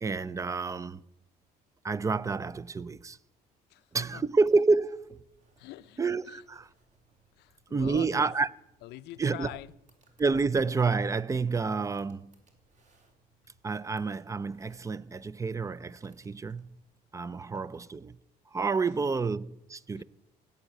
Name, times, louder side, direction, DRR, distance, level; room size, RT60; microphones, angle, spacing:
voice 1, 0.0-1.0 1.8-3.2 3.9-5.2 6.0-6.7 7.7-8.5 9.2-9.5 10.2-12.3 13.6-16.8 17.1-18.2 18.5-20.0, right 4 dB, 20° right, 0.5 m, -29 dB
voice 2, 3.7-4.2 5.6-6.0 6.2-6.4 7.3-8.3 8.8-9.7 19.9-20.0, left 16 dB, 80° left, 0.6 m, -45 dB
sound 1, 4.0-17.0, right 3 dB, 45° right, 3.4 m, -67 dB
16.5 x 7.1 x 9.0 m
cardioid pair, 110°, 17 cm